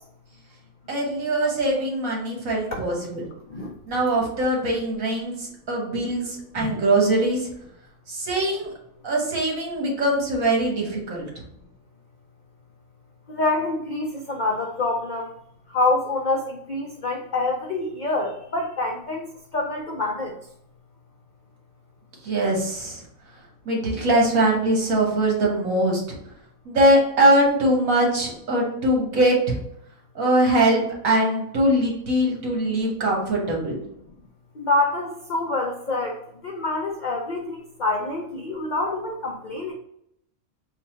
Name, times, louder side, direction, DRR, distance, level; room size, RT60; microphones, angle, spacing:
voice 1, 0.9-3.2 3.9-7.5 8.1-8.7 9.0-11.4 22.2-23.0 23.6-26.2 26.6-29.6 30.1-33.8, right 1 dB, 75° right, -1 dB, 1.6 m, -22 dB
voice 2, 13.3-15.3 15.7-20.4 34.6-36.2 36.4-39.7, left 2 dB, 65° left, 0 dB, 0.4 m, -26 dB
4.0 x 2.2 x 4.2 m, 0.75 s
omnidirectional pair, 1.4 m